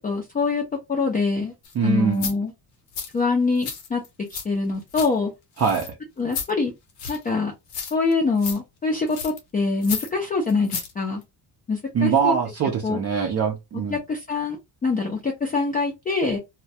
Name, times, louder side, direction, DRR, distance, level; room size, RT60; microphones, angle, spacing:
voice 1, 0.0-0.6 0.9-1.5 1.8-2.5 3.1-4.0 4.4-5.3 6.2-6.7 7.1-7.5 7.9-11.2 11.7-12.3 12.8-13.0 13.7-16.4, left 4 dB, 20° left, 0.4 m, -24 dB
sound 1, 1.6-1.7 2.1-2.3 2.9-3.1 3.6-4.4 4.7-5.1 5.6-5.9 6.3-6.5 7.0-7.3 7.7-8.1 8.4-8.6 9.1-9.4 9.8-10.1 10.5-10.9 11.2-11.3, left 6 dB, 65° left, 0.8 m, -32 dB
voice 2, 1.7-2.3 5.6-5.9 11.9-14.0, right 6 dB, 40° right, 0.5 m, -23 dB
2.2 x 2.1 x 2.7 m
cardioid pair, 155°, 41 cm